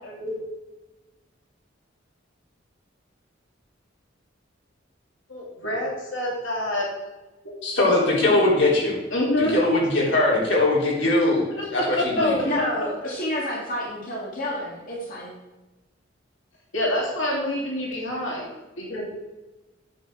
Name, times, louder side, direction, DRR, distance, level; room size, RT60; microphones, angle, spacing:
voice 1, 0.0-0.4 5.3-6.9 9.1-9.6 11.6-11.7 12.2-12.3 16.7-18.5 18.8-19.0, left 1 dB, 90° left, -3 dB, 2.8 m, -27 dB
voice 2, 7.6-9.0 9.4-11.4 11.7-12.6, left 2 dB, 70° left, -4 dB, 3.4 m, -21 dB
voice 3, 12.1-15.4, left 1 dB, 45° left, -4 dB, 1.9 m, -28 dB
8.7 x 7.2 x 4.7 m, 1.1 s
head